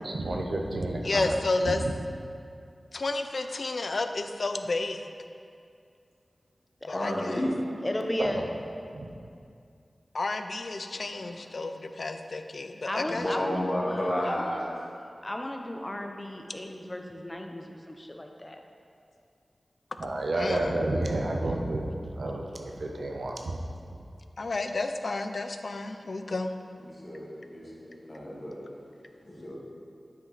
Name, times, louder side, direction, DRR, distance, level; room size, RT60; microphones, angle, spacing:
voice 1, 0.0-1.3 1.7-1.9 8.2-8.5 8.9-9.1 20.0-23.6, right 2 dB, 75° right, 1 dB, 0.8 m, -30 dB
voice 2, 1.0-1.8 2.9-5.0 6.9-7.4 10.1-13.2 20.4-20.7 24.4-26.5, left 3 dB, 70° left, 7 dB, 0.4 m, -31 dB
voice 3, 6.9-7.6 10.9-11.4 13.0-14.7 26.8-28.5 29.3-29.6, left 1 dB, 45° left, -4 dB, 1.7 m, -32 dB
voice 4, 7.8-8.4 12.9-14.9 15.2-18.6, left 1 dB, 25° left, 3 dB, 0.7 m, -35 dB
9.2 x 5.1 x 4.0 m, 2.4 s
wide cardioid pair, 60°, 0 cm